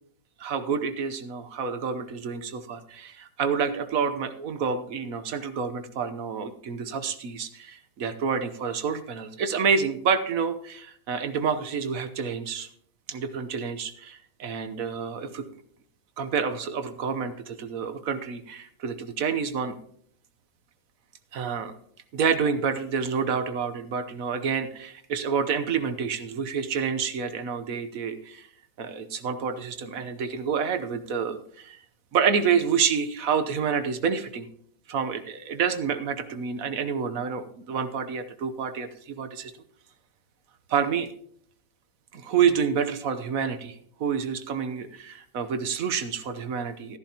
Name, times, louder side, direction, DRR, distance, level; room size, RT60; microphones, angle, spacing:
voice 1, 0.4-12.7 13.1-15.4 16.2-19.8 21.3-21.7 22.1-28.5 28.8-31.8 32.1-34.5 34.9-39.5 40.7-41.1 42.1-47.0, right 6 dB, 55° right, 10 dB, 1.1 m, -28 dB
14.0 x 11.0 x 2.9 m, 0.64 s
omnidirectional pair, 2.0 m